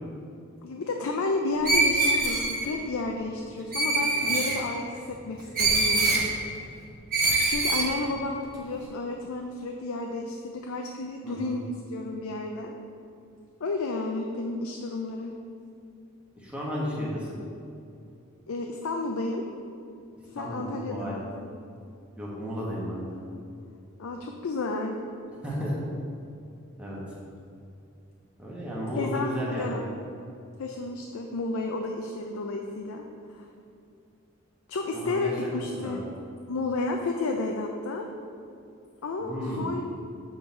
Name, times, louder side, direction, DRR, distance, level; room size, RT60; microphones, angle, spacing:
voice 1, 0.6-6.2 7.4-12.7 13.6-15.3 18.5-19.4 20.3-21.5 24.0-25.0 29.0-29.9 30.6-33.0 33.3-33.5 34.7-36.0 36.5-38.1 39.0-39.8, left 3 dB, 85° left, 2 dB, 0.5 m, -32 dB
Screech, 1.6-2.7 3.7-4.6 5.5-6.2 7.1-7.9, right 2 dB, 45° right, 1.2 m, -24 dB
voice 2, 11.2-11.6 16.4-17.4 20.3-21.2 22.2-23.2 25.4-25.7 26.8-27.0 28.4-29.7 34.9-36.0 39.2-39.7, equal, 5° right, -6 dB, 1.4 m, -33 dB
7.8 x 3.8 x 4.3 m, 2.6 s
head